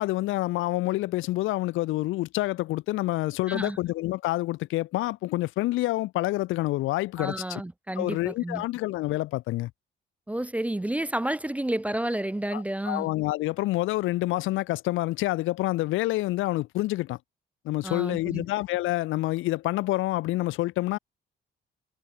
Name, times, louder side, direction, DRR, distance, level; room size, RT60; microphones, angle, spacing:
voice 1, 0.0-7.6 8.0-9.7 12.5-17.2 17.6-21.0, left 18 dB, 80° left, 0.4 m, -27 dB
voice 2, 7.2-8.6 10.3-13.1 17.8-18.4, right 1 dB, 5° right, 0.4 m, -30 dB
cardioid pair, 90°, 20 cm